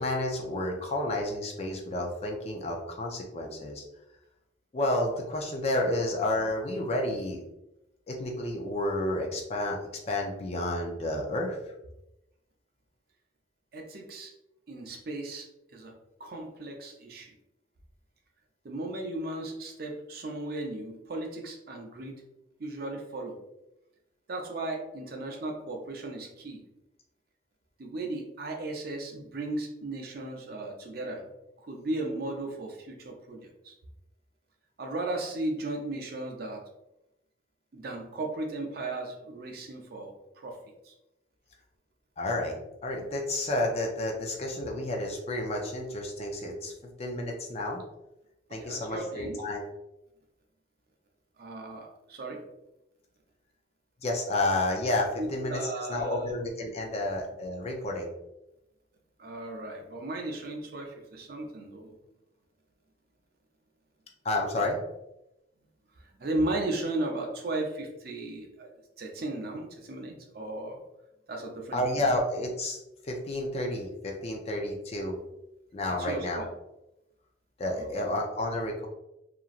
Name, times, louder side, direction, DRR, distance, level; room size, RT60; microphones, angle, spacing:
voice 1, 0.0-3.8 4.7-7.4 8.1-9.8 10.1-11.6 42.2-42.6 42.8-47.8 48.5-49.6 54.0-58.1 64.2-64.8 71.7-72.8 73.0-75.2 75.7-76.5 77.6-78.9, left 1 dB, 35° left, 1 dB, 0.4 m, -30 dB
voice 2, 13.7-14.3 14.7-15.5 15.7-15.9 16.2-17.3 18.6-22.2 22.6-23.4 24.3-26.6 27.8-31.3 31.6-33.8 34.8-36.6 37.7-40.1 40.4-40.6 40.8-40.9 48.6-49.4 51.4-52.4 55.2-56.2 59.2-61.9 66.0-68.7 69.0-70.8 71.3-72.1 75.9-76.5 77.7-78.1, right 2 dB, 50° right, 2 dB, 0.5 m, -36 dB
2.9 x 2.4 x 2.4 m, 0.90 s
head